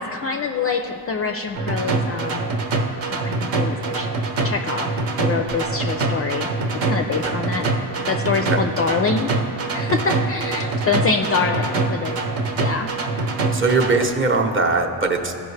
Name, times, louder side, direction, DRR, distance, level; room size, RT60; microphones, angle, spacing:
voice 1, 0.0-2.5 3.2-4.1 4.4-4.9 5.2-6.5 6.8-7.7 8.1-9.3 9.7-12.2 12.5-13.0, left 4 dB, 30° left, 4 dB, 0.4 m, -25 dB
sound 1, 1.5-14.1, right 3 dB, 70° right, 1.0 m, -24 dB
voice 2, 13.5-15.3, right 3 dB, 25° right, 2 dB, 0.8 m, -20 dB
13.5 x 5.3 x 3.2 m, 2.4 s
cardioid pair, 85°, 48 cm